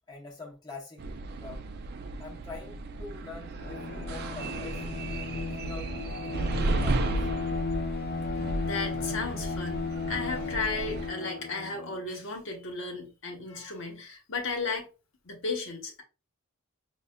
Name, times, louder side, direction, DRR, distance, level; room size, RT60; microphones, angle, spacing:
voice 1, 0.1-1.0 1.4-1.6 2.2-4.8 5.6-6.6 6.8-7.3, left 3 dB, 20° left, 0.8 m, -45 dB
sound 1, 1.0-11.1, right 2 dB, 45° right, 0.4 m, -34 dB
Bowed string instrument, 3.5-12.0, left 4 dB, 45° left, 0.4 m, -35 dB
voice 2, 8.6-14.9 15.2-16.0, left 3 dB, 60° left, 1.0 m, -34 dB
5.3 x 2.3 x 2.2 m
head